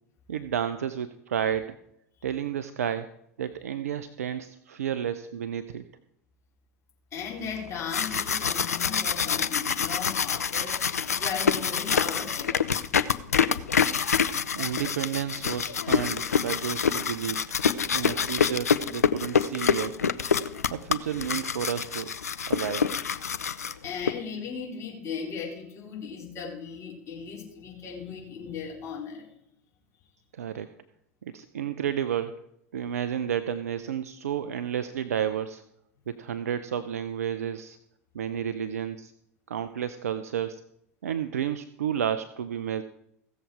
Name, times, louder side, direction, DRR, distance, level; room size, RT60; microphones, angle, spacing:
voice 1, 0.3-1.8 2.2-3.1 3.4-5.8 14.5-17.4 17.8-19.9 20.7-22.1 22.5-22.9 30.3-30.7 31.2-32.4 32.7-35.6 36.1-37.8 38.1-39.1 39.5-40.6 41.0-42.8, right 9 dB, 75° right, 11 dB, 0.6 m, -31 dB
voice 2, 7.1-10.8 11.2-12.8 17.9-18.2 23.8-29.3, left 6 dB, 35° left, -3 dB, 4.2 m, -37 dB
sound 1, 7.7-24.1, left 6 dB, 80° left, 0.5 m, -26 dB
16.0 x 7.3 x 4.7 m, 0.75 s
figure-of-eight pair, 80°, 8 cm